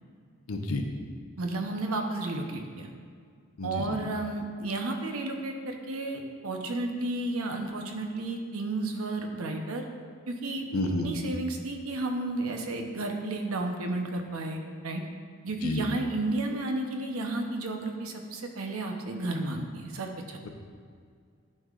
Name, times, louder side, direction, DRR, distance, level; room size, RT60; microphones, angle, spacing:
voice 1, 0.5-0.8 3.6-3.9 10.7-11.1 15.6-15.8, left 1 dB, 90° left, 3 dB, 0.8 m, -30 dB
voice 2, 1.4-2.9 3.6-9.8 10.3-10.7 11.0-15.0 15.4-20.4, right 2 dB, 85° right, 3 dB, 0.8 m, -32 dB
11.5 x 5.5 x 2.4 m, 2.1 s
head